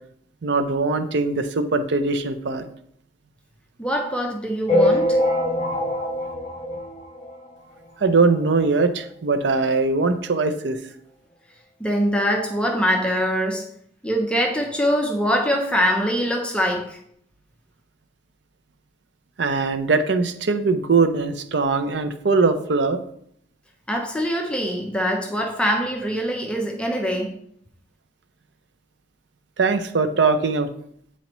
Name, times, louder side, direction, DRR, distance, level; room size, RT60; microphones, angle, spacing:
voice 1, 0.4-2.6 5.6-5.7 8.0-10.8 19.4-23.0 29.6-30.7, right 4 dB, 70° right, 8 dB, 0.5 m, -21 dB
voice 2, 3.8-5.2 11.8-13.7 14.0-17.0 23.9-27.3, equal, 5° left, 2 dB, 0.6 m, -23 dB
sound 1, 4.7-7.5 8.0-8.1 8.3-8.4 8.7-8.8 9.7-9.8 10.3-10.4, left 1 dB, 35° left, 1.4 m, -23 dB
8.3 x 4.2 x 3.0 m, 0.69 s
head